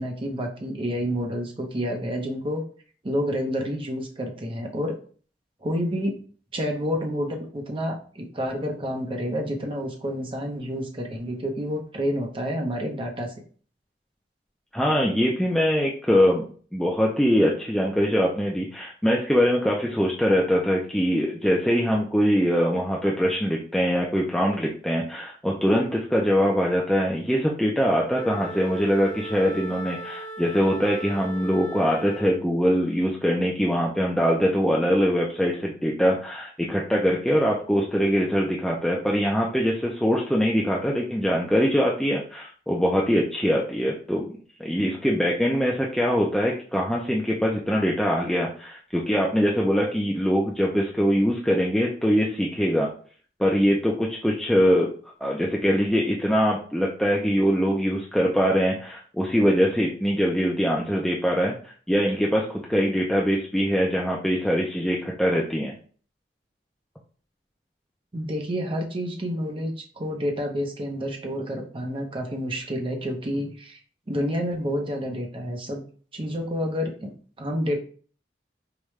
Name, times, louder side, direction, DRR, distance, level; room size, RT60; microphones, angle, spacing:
voice 1, 0.0-2.6 3.0-4.9 5.6-6.1 6.5-13.3 68.1-73.8 74.1-75.8 76.1-77.1 77.4-77.8, equal, 30° right, 2 dB, 0.7 m, -29 dB
voice 2, 14.7-44.2 44.6-52.9 53.4-54.9 55.2-65.7, equal, 5° left, -2 dB, 0.4 m, -23 dB
Wind instrument woodwind instrument, 28.1-32.5, right 2 dB, 45° left, 0.6 m, -38 dB
4.9 x 2.2 x 3.1 m, 0.43 s
head